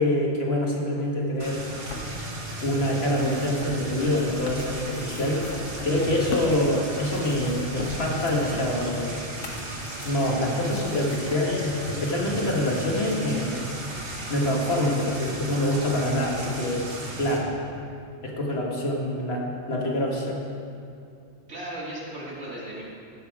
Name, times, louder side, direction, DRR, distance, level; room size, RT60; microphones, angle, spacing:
voice 1, 0.0-1.7 2.6-5.4 5.8-9.2 10.0-13.7 14.3-16.8 17.2-17.5 18.2-20.4, left 1 dB, 55° left, -2 dB, 1.8 m, -25 dB
sound 1, 1.4-6.6 6.9-11.4 12.2-12.3, left 3 dB, 85° left, 1.4 m, -40 dB
sound 2, 1.4-17.4, right 2 dB, 50° right, 1.6 m, -36 dB
voice 2, 21.5-22.8, right 1 dB, 75° right, -7 dB, 2.8 m, -36 dB
15.5 x 5.7 x 4.9 m, 2.5 s
omnidirectional pair, 1.3 m